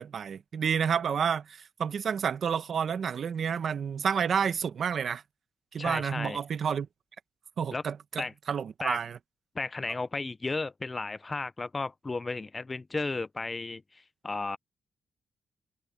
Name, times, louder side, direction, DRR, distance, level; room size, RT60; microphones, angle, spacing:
voice 1, 0.0-5.2 5.7-6.9 7.6-9.2, right 7 dB, 60° right, 1.1 m, -30 dB
voice 2, 5.8-6.4 7.7-7.8 8.2-8.3 8.8-9.0 9.5-14.6, left 3 dB, 25° left, 0.5 m, -34 dB
cardioid pair, 95°, 0 cm